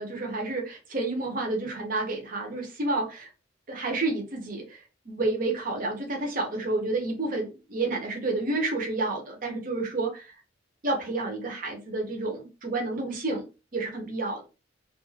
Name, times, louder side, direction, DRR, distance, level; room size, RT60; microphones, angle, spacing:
voice 1, 0.0-3.3 3.7-4.8 5.1-10.3 10.8-13.5 13.7-14.4, right 2 dB, 50° right, 0.7 m, -30 dB
2.4 x 2.3 x 3.2 m
head